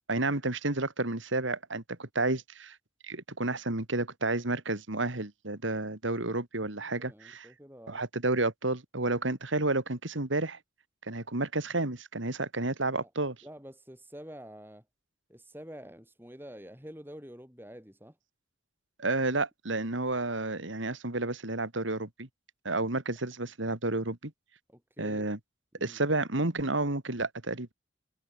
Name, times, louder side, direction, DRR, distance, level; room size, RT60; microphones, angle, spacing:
voice 1, 0.1-2.8 3.0-7.5 7.9-10.6 11.1-13.4 19.0-22.3 22.6-24.3 25.0-25.4 25.8-27.7, right 2 dB, 70° right, 2.4 m, -31 dB
voice 2, 7.0-8.0 13.0-13.1 13.4-14.8 15.3-18.2 24.7-25.3 25.8-26.0, equal, 10° right, 7.6 m, -48 dB
head